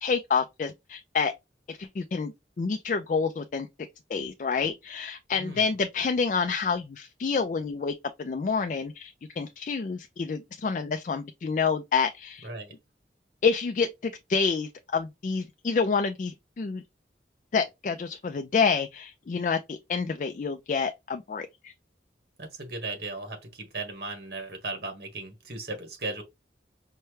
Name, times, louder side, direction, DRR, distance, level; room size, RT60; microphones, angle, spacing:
voice 1, 0.0-1.3 1.7-3.7 4.1-12.5 13.4-16.8 17.5-21.7, left 5 dB, 45° left, 0.3 m, -28 dB
voice 2, 5.3-5.7 12.4-12.8 22.4-26.2, right 3 dB, 60° right, 1.5 m, -37 dB
5.5 x 2.2 x 3.2 m
head